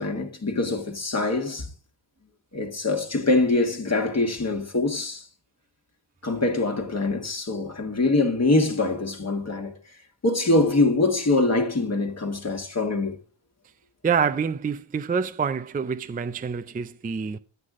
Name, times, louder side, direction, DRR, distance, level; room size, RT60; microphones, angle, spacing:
voice 1, 0.0-1.7 2.5-5.2 6.2-9.8 10.2-13.2, left 2 dB, 35° left, 1.5 m, -24 dB
voice 2, 14.0-17.4, right 6 dB, 20° right, 0.4 m, -26 dB
11.5 x 8.0 x 3.6 m
wide cardioid pair, 130°, 48 cm